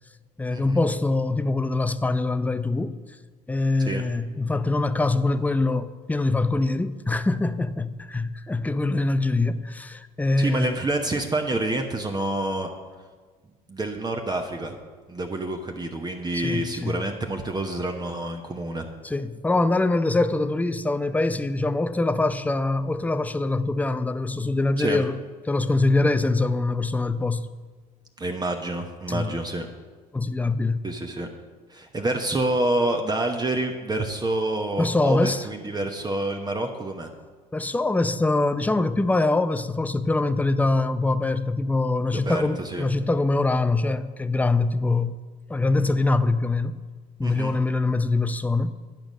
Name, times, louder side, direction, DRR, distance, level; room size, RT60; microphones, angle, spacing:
voice 1, 0.4-3.0 3.5-10.8 16.3-17.0 19.0-25.2 25.5-27.5 29.1-29.3 30.1-30.8 34.8-35.5 37.5-45.2 45.5-46.8 47.2-48.7, left 2 dB, 10° left, 0.5 m, -24 dB
voice 2, 10.4-12.7 13.7-14.8 15.1-18.9 24.8-25.0 28.2-29.7 30.8-31.3 31.7-37.1 42.1-42.8 47.2-47.5, right 2 dB, 20° right, 0.9 m, -28 dB
10.5 x 5.1 x 6.2 m
hypercardioid pair, 65°, 20 cm